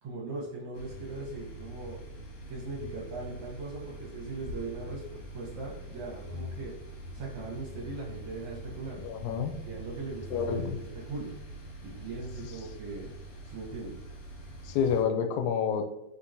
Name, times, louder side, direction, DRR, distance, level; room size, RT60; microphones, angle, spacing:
voice 1, 0.0-2.0 2.5-6.7 7.1-9.0 9.6-11.4 11.8-13.1 13.4-14.0, right 3 dB, 65° right, -3 dB, 1.5 m, -39 dB
sound 1, 0.7-15.0, right 2 dB, 60° left, 1.5 m, -45 dB
sound 2, 3.8-10.7, left 3 dB, 90° right, 2.0 m, -46 dB
voice 2, 9.0-9.5 10.3-10.8 14.6-15.9, left 7 dB, 80° left, 5 dB, 1.9 m, -28 dB
4.5 x 3.8 x 2.6 m, 0.99 s
omnidirectional pair, 3.3 m